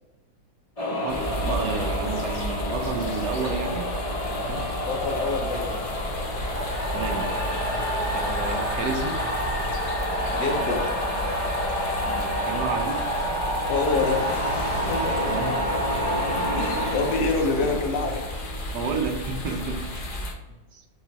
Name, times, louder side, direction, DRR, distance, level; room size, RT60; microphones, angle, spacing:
sound 1, 0.8-19.3, equal, 35° left, 0.6 m, -29 dB
voice 1, 0.9-4.6 6.9-7.4 8.1-9.2 12.0-13.1 15.2-15.6 16.4-16.5 17.2-17.4 17.6-17.7 18.7-19.9 20.7-20.8, right 4 dB, 75° right, 3 dB, 1.3 m, -31 dB
sound 2, 1.1-20.3, equal, 70° left, 1.4 m, -33 dB
voice 2, 4.8-5.8 8.5-8.7 10.3-10.9 13.7-15.3 16.3-18.3, left 4 dB, 85° left, 3 dB, 1.4 m, -27 dB
5.8 x 2.4 x 3.9 m, 1.1 s
omnidirectional pair, 1.8 m